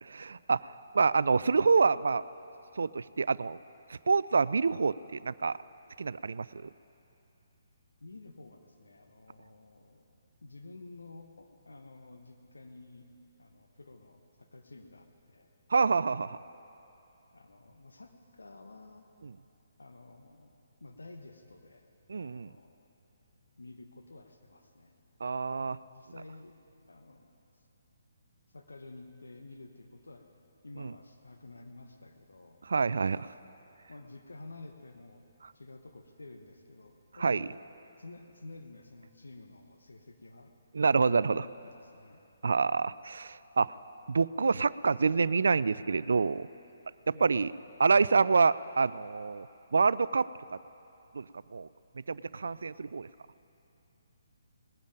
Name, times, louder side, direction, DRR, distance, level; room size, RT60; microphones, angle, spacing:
voice 1, 0.0-2.2 2.8-3.6 3.9-5.6 6.0-6.7 15.7-16.4 19.2-19.3 22.1-22.5 25.2-25.8 30.8-30.9 32.7-33.3 37.2-37.5 40.7-41.4 42.4-43.7 44.1-46.5 47.1-47.5 47.8-49.5 49.7-50.3 51.1-51.7 52.1-53.1, right 4 dB, 70° right, 18 dB, 0.3 m, -27 dB
voice 2, 8.0-10.1 10.4-13.1 13.4-15.5 17.3-19.1 19.8-20.5 20.8-21.8 22.2-22.8 23.6-24.9 25.4-26.6 26.8-27.3 28.5-30.2 30.6-32.6 33.9-35.3 35.5-37.5 38.0-40.5 41.1-42.3 47.1-47.5 52.4-52.6, left 2 dB, 80° left, 5 dB, 1.1 m, -51 dB
19.5 x 10.5 x 5.1 m, 2.8 s
figure-of-eight pair, 140°, 0 cm